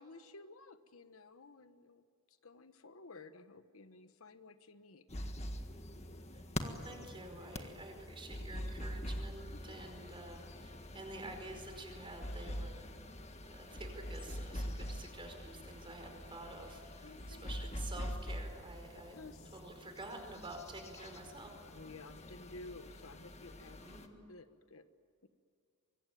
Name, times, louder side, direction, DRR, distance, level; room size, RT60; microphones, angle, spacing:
voice 1, 0.0-5.1 9.5-9.6 17.0-17.5 19.2-19.6 21.7-23.8 24.3-24.9 25.2-25.3, left 3 dB, 70° left, 10 dB, 1.2 m, -54 dB
sound 1, 5.1-24.1, equal, 30° left, 1.7 m, -45 dB
voice 2, 6.3-12.9 13.5-19.2 19.5-21.5 23.8-24.2, right 2 dB, 25° right, 4 dB, 4.9 m, -49 dB
24.5 x 22.5 x 9.3 m, 2.3 s
head